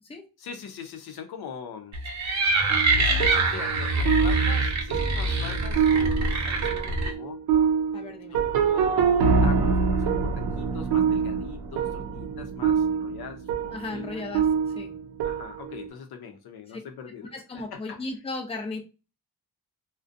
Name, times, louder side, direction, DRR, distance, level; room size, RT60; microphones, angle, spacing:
voice 1, 0.4-2.0 3.0-7.7 8.3-14.3 15.2-18.0, left 6 dB, 85° left, 0.6 m, -42 dB
sound 1, 1.9-7.1, right 2 dB, 50° right, 0.7 m, -24 dB
sound 2, 2.7-15.9, right 6 dB, 90° right, 0.5 m, -25 dB
voice 2, 7.9-8.4 13.7-14.5 14.8-14.9 17.3-18.8, left 3 dB, 15° left, 0.5 m, -35 dB
2.4 x 2.2 x 2.5 m
wide cardioid pair, 120°, 37 cm